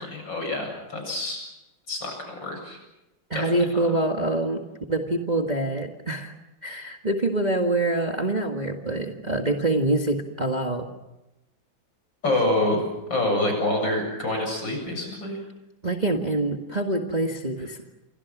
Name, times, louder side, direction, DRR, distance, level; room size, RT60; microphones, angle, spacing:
voice 1, 0.0-1.5 1.9-2.8 3.3-3.9 12.2-12.8 13.1-15.4, left 1 dB, 60° left, 3 dB, 8.6 m, -27 dB
voice 2, 3.3-4.6 4.9-6.3 6.6-10.9 15.8-17.8, right 2 dB, 20° right, 3 dB, 1.7 m, -25 dB
29.5 x 25.0 x 6.2 m, 0.95 s
omnidirectional pair, 2.3 m